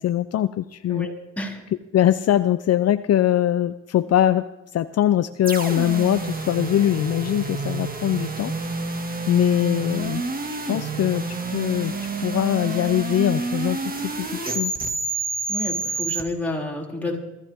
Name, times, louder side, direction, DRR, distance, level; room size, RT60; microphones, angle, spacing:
voice 1, 0.0-1.1 1.9-4.5 4.7-8.5 9.3-10.2 10.7-14.7, left 11 dB, 55° left, 13 dB, 0.6 m, -22 dB
voice 2, 0.9-1.6 15.5-17.2, left 1 dB, 5° left, -2 dB, 6.2 m, -30 dB
sound 1, 5.4-16.2, right 3 dB, 30° right, 2.2 m, -29 dB
23.5 x 15.0 x 3.7 m, 0.95 s
cardioid pair, 90°, 30 cm